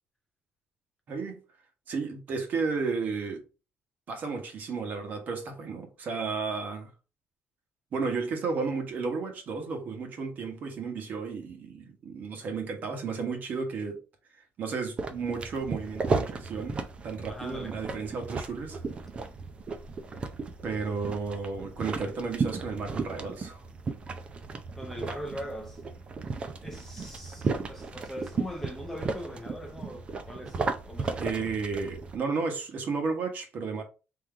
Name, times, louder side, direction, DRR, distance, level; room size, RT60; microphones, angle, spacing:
voice 1, 1.1-1.4 1.9-3.4 4.1-6.9 7.9-14.0 14.3-18.8 20.6-23.6 31.2-33.8, right 4 dB, 45° right, 1.3 m, -33 dB
sound 1, 15.0-32.2, right 4 dB, 25° right, 0.5 m, -35 dB
voice 2, 17.3-17.8 24.8-25.8 26.6-31.5, equal, 5° left, 0.7 m, -41 dB
3.8 x 3.1 x 4.4 m
cardioid pair, 165°, 4 cm